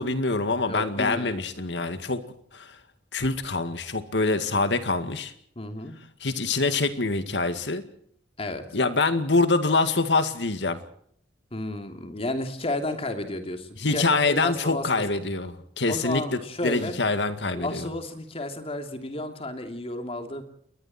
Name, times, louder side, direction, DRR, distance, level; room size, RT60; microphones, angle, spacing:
voice 1, 0.0-2.2 2.5-2.7 3.1-5.3 6.2-7.8 8.7-10.8 13.8-17.9, left 3 dB, 70° left, 10 dB, 2.1 m, -25 dB
voice 2, 0.7-1.5 5.6-5.9 8.4-8.7 11.5-15.2 15.9-17.0 17.5-20.4, left 1 dB, 35° left, 6 dB, 2.9 m, -32 dB
29.5 x 22.0 x 4.4 m, 0.64 s
head